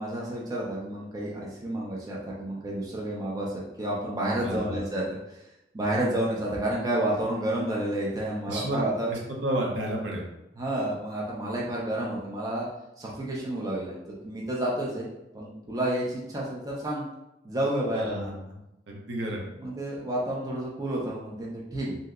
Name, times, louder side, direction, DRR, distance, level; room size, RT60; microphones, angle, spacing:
voice 1, 0.0-5.4 5.7-9.1 10.6-12.7 13.0-14.0 14.2-15.1 15.3-17.1 17.4-18.3 19.6-22.0, right 1 dB, 20° right, -4 dB, 0.5 m, -30 dB
voice 2, 4.4-4.8 8.5-8.8 9.1-10.2 17.9-18.6 18.9-19.4, right 1 dB, 75° right, -1 dB, 0.7 m, -31 dB
2.7 x 2.1 x 3.5 m, 0.90 s
head